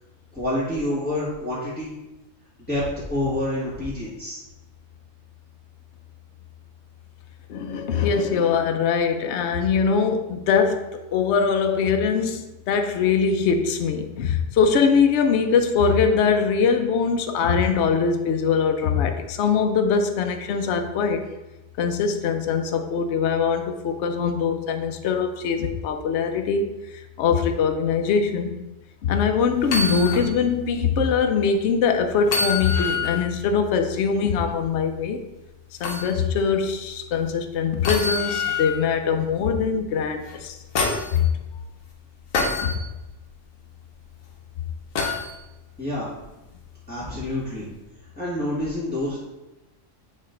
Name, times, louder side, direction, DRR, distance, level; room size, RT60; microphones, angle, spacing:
voice 1, 0.3-1.9 2.7-4.4 45.8-46.1 46.9-47.7 48.1-49.2, left 1 dB, 5° left, -10 dB, 1.6 m, -27 dB
voice 2, 7.5-21.3 21.8-26.7 27.2-28.5 29.0-35.2 35.8-41.3 42.6-42.7, left 6 dB, 65° left, 5 dB, 0.9 m, -22 dB
sound 1, 29.6-30.3 30.7-30.8 32.2-33.3 35.8-36.1 37.8-38.8 40.3-41.2 42.3-42.8 44.9-45.3 47.1-47.2, left 4 dB, 80° left, 1.3 m, -26 dB
8.6 x 3.2 x 3.8 m, 1.0 s
omnidirectional pair, 1.4 m